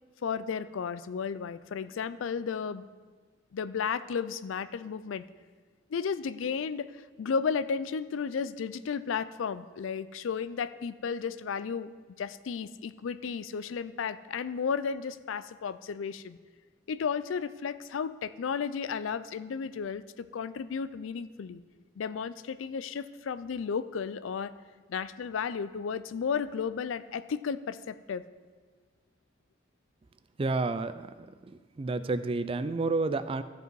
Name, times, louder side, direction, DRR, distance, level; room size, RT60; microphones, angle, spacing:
voice 1, 0.2-2.9 3.5-5.2 5.9-11.9 12.2-16.4 16.9-21.6 22.0-24.5 24.9-28.2, left 6 dB, 90° left, 14 dB, 0.4 m, -33 dB
voice 2, 30.4-31.3 31.8-33.4, right 3 dB, 30° right, 13 dB, 0.4 m, -30 dB
14.5 x 5.3 x 4.7 m, 1.4 s
head